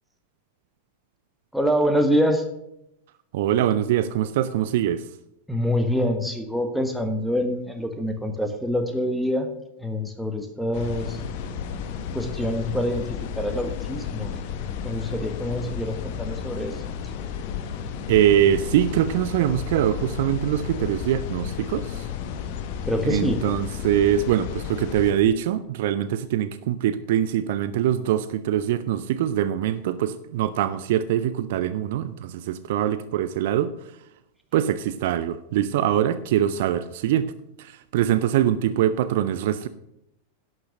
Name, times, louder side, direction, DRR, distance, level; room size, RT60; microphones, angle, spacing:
voice 1, 1.5-2.4 5.5-9.5 9.8-11.2 12.1-13.0 13.4-16.9 22.8-23.4, equal, ahead, 5 dB, 1.4 m, -25 dB
voice 2, 3.3-5.0 18.1-22.1 23.0-33.7 34.5-37.3 37.6-39.7, right 11 dB, 55° right, 14 dB, 0.5 m, -23 dB
sound 1, 10.7-25.1, left 7 dB, 45° left, 1.0 m, -33 dB
11.5 x 6.7 x 6.3 m, 0.82 s
figure-of-eight pair, 90°, 0 cm